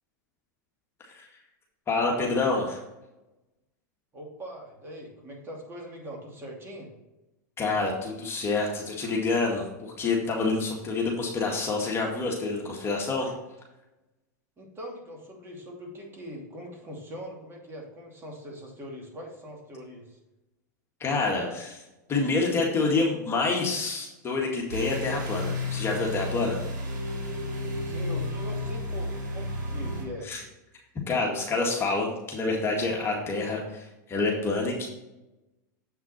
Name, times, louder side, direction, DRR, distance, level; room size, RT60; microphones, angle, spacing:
voice 1, 1.9-2.8 7.6-13.3 21.0-21.8 22.1-26.6 30.2-30.4 31.1-34.9, left 3 dB, 25° left, -1 dB, 1.9 m, -27 dB
voice 2, 4.1-6.9 14.6-20.2 27.8-30.3, equal, 25° right, -1 dB, 2.7 m, -41 dB
sound 1, 24.7-30.0, left 2 dB, 85° right, 3.0 m, -32 dB
7.7 x 5.8 x 4.3 m, 0.99 s
hypercardioid pair, 110°, 10 cm